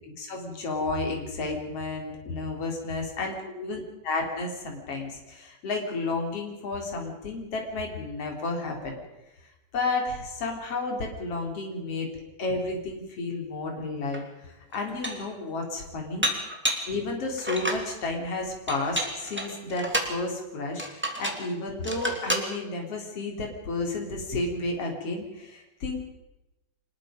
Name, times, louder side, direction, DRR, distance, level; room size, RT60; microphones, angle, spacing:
voice 1, 0.2-3.8 4.1-9.0 9.7-12.1 12.4-16.3 16.9-26.0, left 3 dB, 40° left, 1 dB, 4.6 m, -32 dB
Dishes pots and pans, 14.1-14.2 14.7-15.3 16.2-16.9 17.4-17.9 18.7-20.2 20.8-21.5 21.8-22.5, equal, 5° right, 1.8 m, -30 dB
25.5 x 21.0 x 5.3 m, 0.98 s
omnidirectional pair, 4.3 m